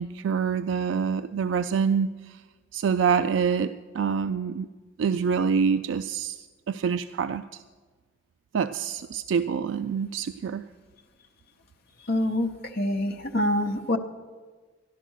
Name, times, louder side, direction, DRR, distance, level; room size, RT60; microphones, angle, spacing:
voice 1, 0.0-2.4 2.7-4.7 5.0-7.6 8.5-10.6, right 6 dB, 70° right, 12 dB, 0.3 m, -26 dB
voice 2, 12.0-14.0, left 1 dB, 50° left, 2 dB, 0.9 m, -26 dB
13.5 x 11.0 x 6.3 m, 1.4 s
head